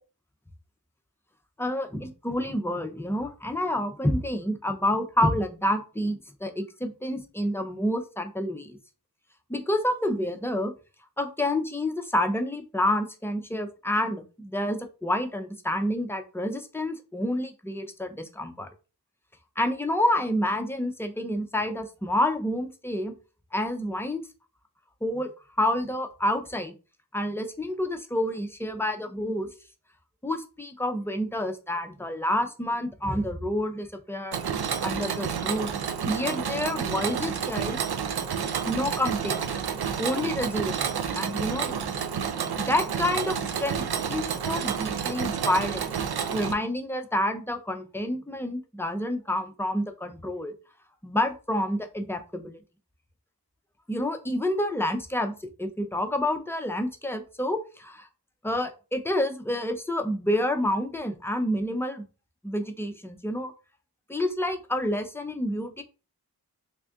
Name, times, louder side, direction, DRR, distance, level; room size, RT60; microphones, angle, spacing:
voice 1, 1.6-8.8 9.5-10.7 11.2-18.7 19.6-23.2 23.5-24.2 25.0-25.3 25.6-26.7 27.1-29.5 30.2-34.4 34.8-35.8 36.0-38.2 38.7-39.5 40.0-40.8 41.1-41.8 42.6-46.0 46.3-50.5 51.0-52.6 53.9-58.1 58.4-62.0 62.4-63.5 64.1-65.8, left 1 dB, 5° left, 5 dB, 0.5 m, -28 dB
Mechanisms, 34.3-46.5, right 7 dB, 80° right, 0.5 m, -30 dB
3.5 x 2.5 x 3.5 m, 0.33 s
wide cardioid pair, 60°, 38 cm